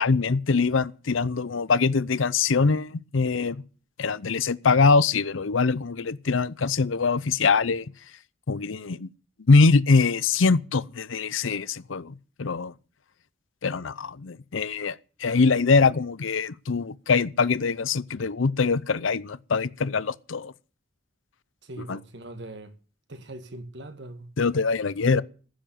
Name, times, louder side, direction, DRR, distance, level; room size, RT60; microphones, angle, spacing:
voice 1, 0.0-3.6 4.0-7.9 8.5-9.1 9.5-12.7 13.6-20.5 21.9-22.0 24.4-25.2, left 4 dB, 80° left, 0.7 m, -23 dB
voice 2, 21.6-22.7 23.1-24.3 25.1-25.2, right 1 dB, 60° right, 1.7 m, -40 dB
15.0 x 7.2 x 9.1 m
head